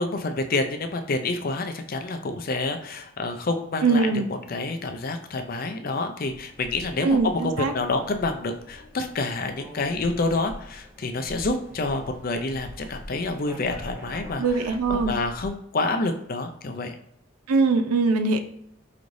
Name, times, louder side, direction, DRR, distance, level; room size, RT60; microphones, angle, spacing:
voice 1, 0.0-4.2 4.5-14.4 14.9-16.9, left 3 dB, 40° left, 6 dB, 0.4 m, -28 dB
voice 2, 3.8-4.3 7.0-7.7 14.4-15.1 17.5-18.4, right 3 dB, 90° right, 8 dB, 0.5 m, -22 dB
sound 1, 6.2-15.5, equal, 10° right, 0.8 m, -43 dB
4.9 x 3.1 x 2.6 m, 0.71 s
head